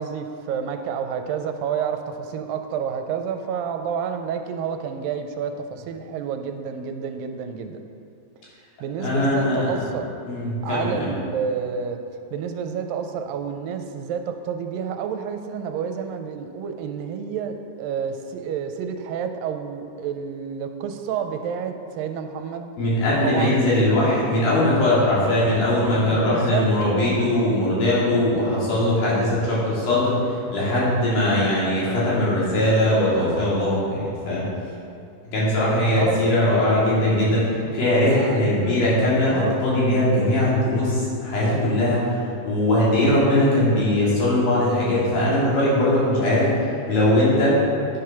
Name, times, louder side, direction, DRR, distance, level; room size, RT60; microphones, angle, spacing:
voice 1, 0.0-7.8 8.8-10.1 10.6-12.0 12.3-22.7 23.2-23.6 26.1-26.7 36.0-36.2 38.1-38.8 39.3-39.7, right 7 dB, 85° right, 6 dB, 2.3 m, -29 dB
voice 2, 9.0-9.9 10.3-11.1 22.8-30.2 30.5-34.5 35.3-42.0 42.4-47.6, left 1 dB, 85° left, -8 dB, 4.7 m, -20 dB
10.5 x 6.7 x 5.8 m, 2.6 s
omnidirectional pair, 4.1 m